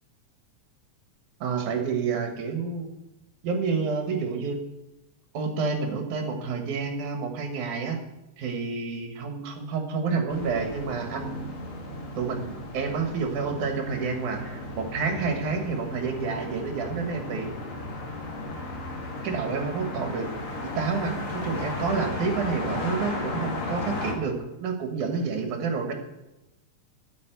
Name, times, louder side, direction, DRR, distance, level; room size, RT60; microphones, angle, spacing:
voice 1, 1.4-2.9 3.4-4.6 5.3-8.0 8.4-11.5 12.2-17.5 19.2-20.3 20.6-25.9, right 5 dB, 75° right, 4 dB, 2.9 m, -29 dB
sound 1, 10.3-24.1, left 2 dB, 50° left, 2.4 m, -35 dB
9.3 x 7.3 x 9.0 m, 0.98 s
omnidirectional pair, 3.5 m